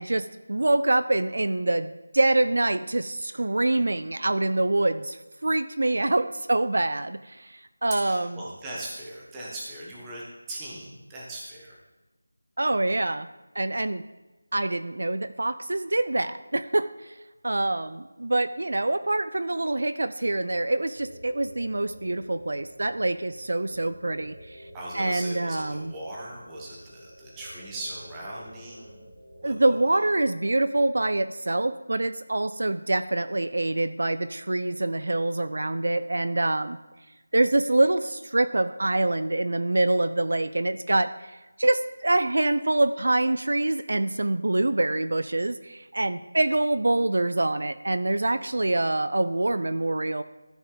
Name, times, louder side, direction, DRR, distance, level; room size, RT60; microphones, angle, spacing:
voice 1, 0.0-8.4 12.6-13.3 13.6-14.0 14.5-17.2 17.4-24.7 24.9-25.9 29.4-36.8 37.3-50.2, right 2 dB, 60° right, 12 dB, 0.4 m, -25 dB
voice 2, 8.0-11.8 24.7-29.0 29.4-30.0, right 1 dB, 5° right, -5 dB, 1.1 m, -39 dB
sound 1, 20.9-29.9, equal, 80° right, 2.8 m, -49 dB
13.0 x 6.1 x 3.8 m, 1.1 s
figure-of-eight pair, 175°, 0 cm